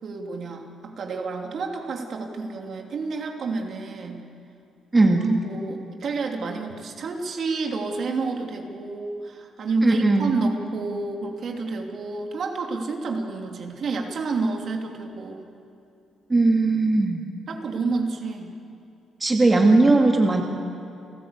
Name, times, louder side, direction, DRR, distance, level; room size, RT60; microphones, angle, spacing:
voice 1, 0.0-4.2 5.0-15.5 17.5-18.5, right 3 dB, 55° right, 2 dB, 2.8 m, -29 dB
voice 2, 4.9-5.2 9.8-10.3 16.3-17.2 19.2-20.4, right 2 dB, 25° right, 2 dB, 2.0 m, -18 dB
29.5 x 14.0 x 8.3 m, 2.6 s
cardioid pair, 90°, 0 cm